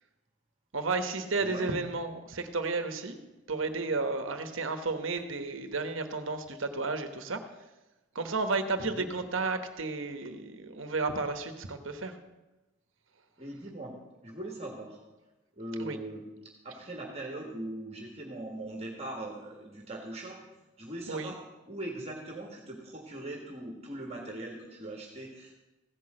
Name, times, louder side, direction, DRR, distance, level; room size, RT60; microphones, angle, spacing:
voice 1, 0.7-3.2 3.5-7.4 8.1-12.2 15.8-16.0 21.1-21.3, right 3 dB, 65° right, 8 dB, 1.1 m, -32 dB
voice 2, 1.4-1.7 8.8-9.1 13.4-13.9 14.2-15.0 15.6-16.2 16.6-20.4 20.8-25.5, right 1 dB, 30° right, 1 dB, 1.7 m, -40 dB
15.5 x 6.1 x 7.6 m, 1.1 s
head